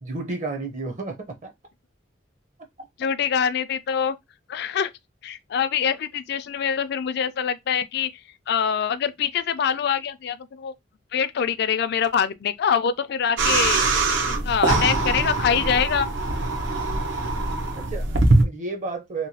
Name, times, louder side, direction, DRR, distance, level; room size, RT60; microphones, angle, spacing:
voice 1, 0.0-1.5 17.8-19.3, right 3 dB, 40° right, 0.6 m, -32 dB
voice 2, 3.0-4.1 4.5-4.9 5.2-8.1 8.5-10.7 11.1-13.9 14.3-16.1, left 7 dB, 60° left, 0.4 m, -24 dB
sound 1, 13.4-18.4, right 2 dB, 85° right, 0.7 m, -22 dB
2.9 x 2.2 x 2.7 m
head